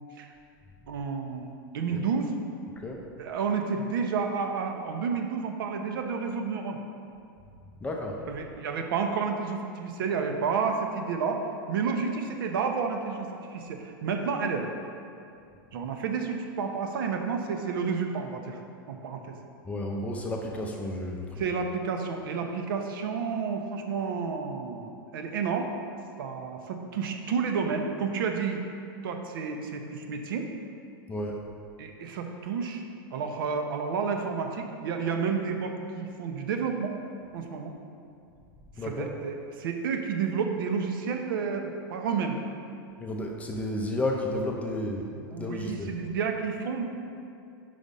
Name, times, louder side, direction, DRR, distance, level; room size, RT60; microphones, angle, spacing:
voice 1, 0.9-2.3 3.2-6.8 8.3-14.7 15.7-18.6 18.9-19.4 21.4-25.7 26.2-28.6 29.0-30.5 31.8-32.8 33.1-36.9 37.3-37.7 38.8-42.4 45.3-46.9, right 5 dB, 70° right, 4 dB, 0.7 m, -30 dB
voice 2, 2.8-3.1 7.8-8.3 19.6-21.4 31.1-31.5 38.8-39.1 43.0-46.0, left 1 dB, 10° left, 0 dB, 0.5 m, -32 dB
5.1 x 3.9 x 5.3 m, 2.4 s
hypercardioid pair, 135°, 12 cm